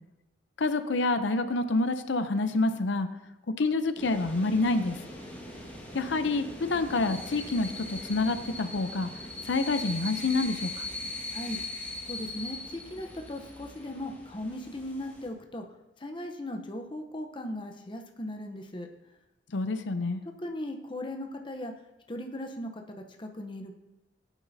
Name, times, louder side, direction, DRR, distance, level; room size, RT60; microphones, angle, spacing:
voice 1, 0.6-3.1 3.6-5.0 5.9-9.1 9.5-10.9 19.5-20.2, left 3 dB, 80° left, 9 dB, 0.6 m, -27 dB
sound 1, 4.0-15.3, left 2 dB, 10° left, 1.6 m, -40 dB
voice 2, 12.0-15.6 16.0-18.9 20.4-21.7 22.1-22.8 23.2-23.7, left 1 dB, 25° left, 4 dB, 0.8 m, -38 dB
16.0 x 9.0 x 2.7 m, 0.95 s
head